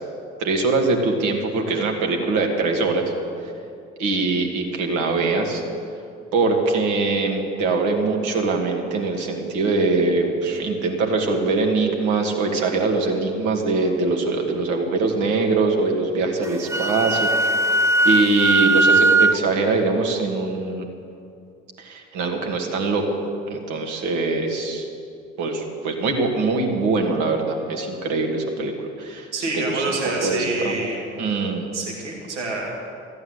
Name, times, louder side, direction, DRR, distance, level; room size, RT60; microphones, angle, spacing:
voice 1, 0.4-3.1 4.0-5.6 6.3-20.9 21.8-23.2 23.5-24.9 25.4-30.0 30.2-30.8 31.2-31.7, right 3 dB, 60° right, 2 dB, 2.2 m, -23 dB
Wind instrument woodwind instrument, 16.4-19.4, right 2 dB, 10° right, 0.4 m, -18 dB
voice 2, 29.3-31.0 31.7-32.7, right 2 dB, 85° right, -1 dB, 1.9 m, -27 dB
14.5 x 8.7 x 8.0 m, 2.4 s
figure-of-eight pair, 55°, 34 cm